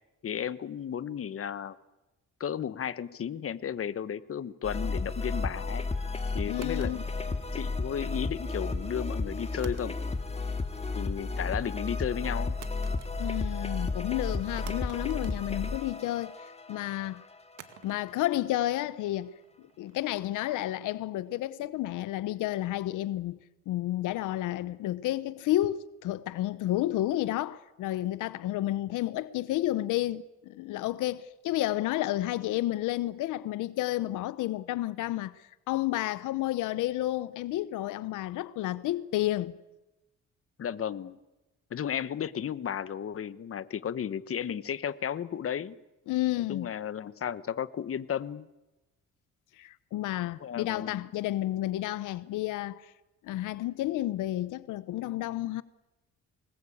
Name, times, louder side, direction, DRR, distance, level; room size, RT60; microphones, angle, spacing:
voice 1, 0.2-1.8 2.4-5.8 6.3-10.0 10.9-12.6 40.6-41.2 41.7-45.8 46.5-48.5 50.4-51.1, left 8 dB, 50° left, 1.2 m, -34 dB
sound 1, 4.6-17.8, left 3 dB, 20° left, 2.3 m, -33 dB
voice 2, 6.5-7.1 13.2-17.2 17.8-19.3 19.8-23.4 23.7-39.5 46.1-46.7 49.6-52.9 53.2-55.6, left 15 dB, 90° left, 0.8 m, -31 dB
sound 2, 6.6-8.0 9.6-10.4 10.7-11.2 12.6-13.6 13.8-13.9 14.7-16.2 17.6-20.6, right 10 dB, 75° right, 2.2 m, -53 dB
25.0 x 20.0 x 8.6 m
cardioid pair, 90°, 30 cm